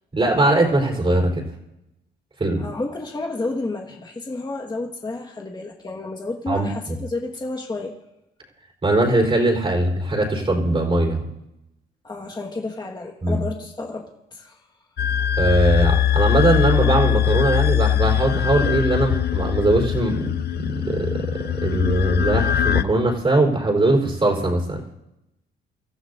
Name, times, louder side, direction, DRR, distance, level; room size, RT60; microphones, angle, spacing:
voice 1, 0.1-1.4 2.4-2.6 6.5-6.7 8.8-11.2 13.2-13.4 15.4-24.9, right 2 dB, 25° right, 0 dB, 4.2 m, -20 dB
voice 2, 2.6-7.9 12.0-14.6, left 2 dB, 20° left, 1 dB, 1.7 m, -31 dB
sound 1, 15.0-22.8, left 10 dB, 55° left, 0.6 m, -21 dB
25.5 x 14.0 x 2.7 m, 0.90 s
cardioid pair, 90°, 20 cm